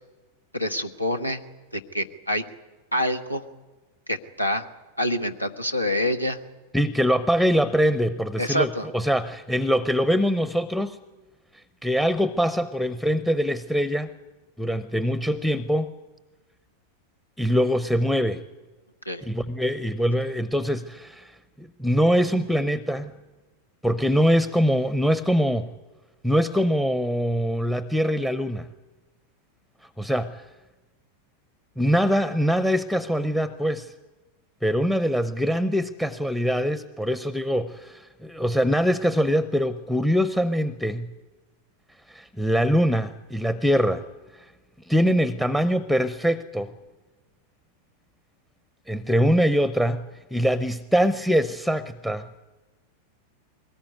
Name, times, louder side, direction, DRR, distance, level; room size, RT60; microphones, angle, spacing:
voice 1, 0.5-1.4 1.7-2.4 2.9-3.4 4.1-4.6 5.0-6.4 8.4-8.9 19.1-19.2, left 1 dB, 90° left, 7 dB, 1.2 m, -26 dB
voice 2, 6.7-11.0 11.8-14.1 14.6-15.9 17.4-18.4 19.3-21.3 21.6-23.1 23.8-25.7 26.2-28.7 30.0-30.4 31.8-33.9 34.6-41.1 42.1-44.1 44.9-46.7 48.9-52.3, equal, ahead, 16 dB, 0.7 m, -23 dB
22.0 x 19.0 x 9.4 m, 1.2 s
figure-of-eight pair, 90°, 0 cm